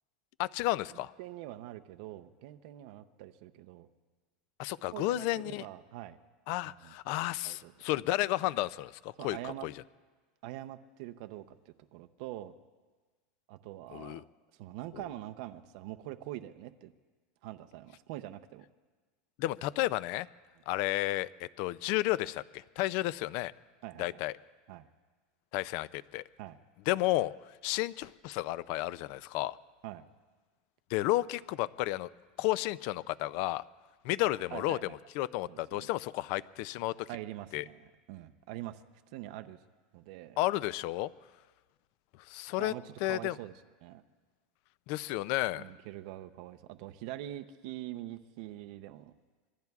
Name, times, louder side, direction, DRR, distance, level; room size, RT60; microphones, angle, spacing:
voice 1, 0.4-1.1 4.6-5.7 6.5-9.7 13.9-14.2 19.4-20.3 20.7-23.5 24.0-24.3 25.5-26.2 26.9-27.3 27.6-29.6 30.9-32.1 32.4-33.6 34.0-34.8 35.1-37.1 37.5-37.6 40.4-41.1 42.3-42.7 43.0-43.4 44.9-45.6, left 17 dB, 45° left, 18 dB, 0.4 m, -32 dB
voice 2, 0.9-3.9 4.9-6.2 6.6-6.9 7.4-7.7 9.2-9.7 10.4-12.5 13.5-14.2 14.5-16.9 17.4-18.6 23.8-24.2 24.7-24.9 26.4-26.6 29.8-30.0 34.5-35.0 35.5-35.9 37.1-38.8 39.1-39.6 39.9-40.4 42.6-43.5 43.8-44.0 45.5-49.1, right 15 dB, 55° right, 8 dB, 0.6 m, -44 dB
26.0 x 22.5 x 2.4 m, 1.4 s
supercardioid pair, 170°, 4 cm